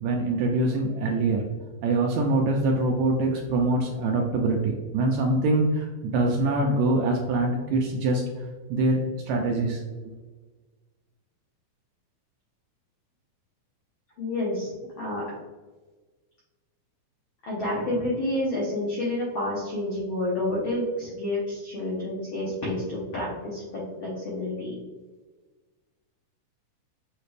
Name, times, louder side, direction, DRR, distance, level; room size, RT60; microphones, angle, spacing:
voice 1, 0.0-1.5 1.8-8.2 8.7-9.0 9.3-10.1, right 2 dB, 80° right, 1 dB, 1.6 m, -24 dB
voice 2, 14.2-14.7 15.0-15.2 17.4-24.8, left 1 dB, 90° left, -5 dB, 1.1 m, -29 dB
6.5 x 2.4 x 3.3 m, 1.3 s
omnidirectional pair, 3.6 m